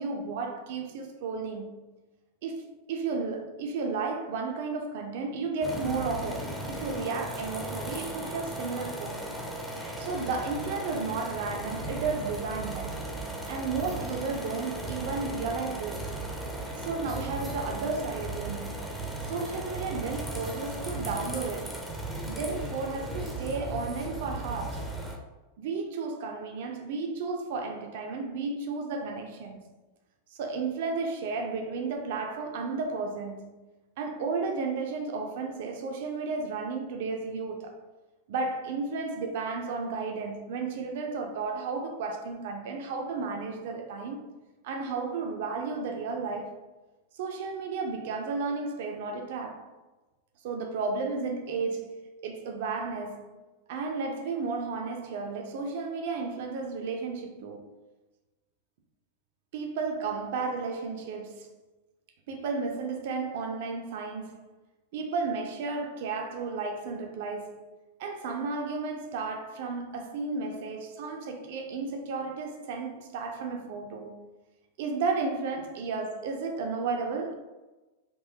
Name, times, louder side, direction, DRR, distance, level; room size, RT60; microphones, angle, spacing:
voice 1, 0.0-1.7 2.4-9.3 10.0-13.0 13.5-16.2 16.8-18.9 19.2-21.8 22.2-24.9 25.6-29.6 30.3-33.5 34.0-37.8 38.3-44.3 44.6-46.7 47.1-49.7 50.4-53.3 53.7-57.7 59.5-61.5 62.3-64.4 64.9-67.6 68.0-74.2 74.8-77.3, right 4 dB, 50° right, 0.4 m, -33 dB
sound 1, 5.6-25.2, right 1 dB, ahead, 0.6 m, -36 dB
3.8 x 2.6 x 2.7 m
figure-of-eight pair, 90°, 0 cm